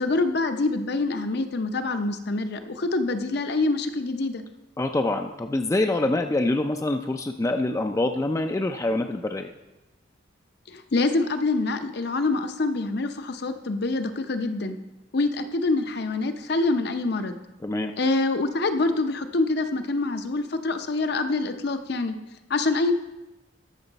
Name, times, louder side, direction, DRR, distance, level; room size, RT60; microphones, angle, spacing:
voice 1, 0.0-4.4 10.7-14.8 15.1-17.4 18.0-22.1 22.5-22.9, left 3 dB, 55° left, 8 dB, 0.6 m, -25 dB
voice 2, 4.8-9.5 17.6-17.9, left 2 dB, 15° left, 6 dB, 0.3 m, -25 dB
13.5 x 6.2 x 4.0 m, 1.0 s
head